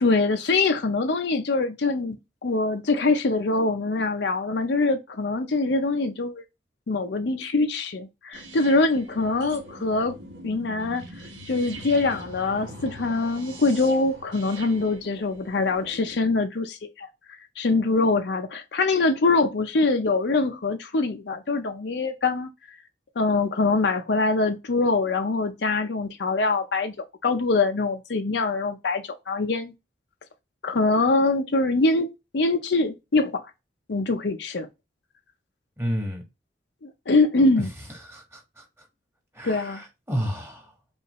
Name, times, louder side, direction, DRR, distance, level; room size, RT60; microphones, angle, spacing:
voice 1, 0.0-2.2 2.4-6.4 6.9-10.2 10.4-11.1 11.5-22.5 23.2-26.9 27.2-29.7 30.6-33.4 33.9-34.7 36.8-37.7 39.4-39.8, left 3 dB, 65° left, 0.6 m, -24 dB
sound 1, 8.3-16.2, right 1 dB, 80° right, 1.3 m, -42 dB
voice 2, 35.8-36.2 37.6-37.7 38.1-38.6 39.3-40.7, equal, 15° right, 1.4 m, -31 dB
5.5 x 2.5 x 3.0 m
head